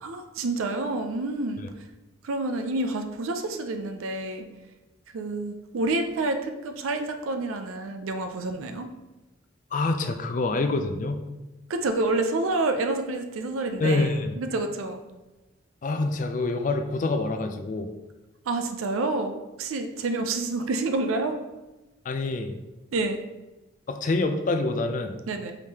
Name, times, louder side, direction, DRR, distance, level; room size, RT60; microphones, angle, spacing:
voice 1, 0.0-1.6 2.2-4.4 5.1-8.9 11.7-14.1 14.4-15.0 18.5-19.3 19.6-21.4 22.9-23.2 25.3-25.6, right 2 dB, 85° right, 6 dB, 0.4 m, -28 dB
voice 2, 9.7-11.3 13.8-14.3 15.8-17.9 22.1-22.5 23.9-25.2, left 2 dB, 40° left, 7 dB, 0.3 m, -26 dB
4.8 x 3.6 x 2.8 m, 1.1 s
head